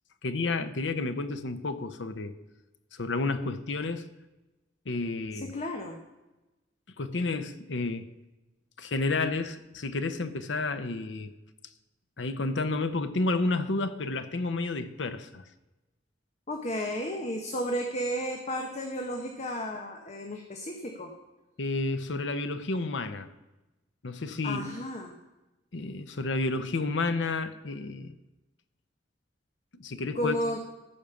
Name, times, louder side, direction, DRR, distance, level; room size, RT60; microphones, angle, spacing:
voice 1, 0.2-2.3 2.9-4.1 4.9-5.5 7.0-8.1 8.8-11.3 12.2-15.4 21.6-23.3 24.0-24.6 25.7-28.1 29.8-30.3, left 3 dB, 75° left, 0.8 m, -31 dB
voice 2, 5.3-6.0 16.5-21.1 24.4-25.2 30.1-30.6, equal, 40° left, 1.0 m, -33 dB
14.0 x 5.2 x 7.0 m
head